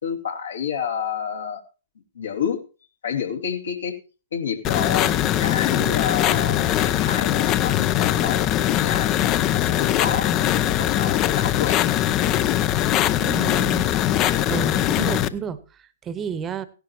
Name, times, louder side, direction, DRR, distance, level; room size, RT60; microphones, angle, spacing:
voice 1, 0.0-1.6 2.1-2.6 3.0-4.0 4.3-11.9, left 7 dB, 75° left, 2.7 m, -29 dB
sound 1, 4.6-15.3, left 12 dB, 30° left, 0.7 m, -21 dB
voice 2, 13.2-13.9 14.5-15.6 16.0-16.7, right 7 dB, 20° right, 1.1 m, -30 dB
16.5 x 11.0 x 2.9 m
hypercardioid pair, 120°, 0 cm